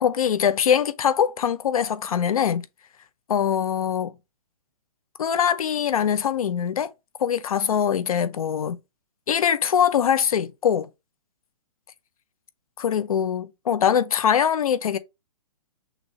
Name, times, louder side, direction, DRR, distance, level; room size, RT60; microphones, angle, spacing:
voice 1, 0.0-2.6 3.3-4.2 5.2-6.9 7.2-8.8 9.3-10.9 12.8-15.0, left 8 dB, 70° left, 0.7 m, -22 dB
6.0 x 2.7 x 3.1 m
hypercardioid pair, 165°, 19 cm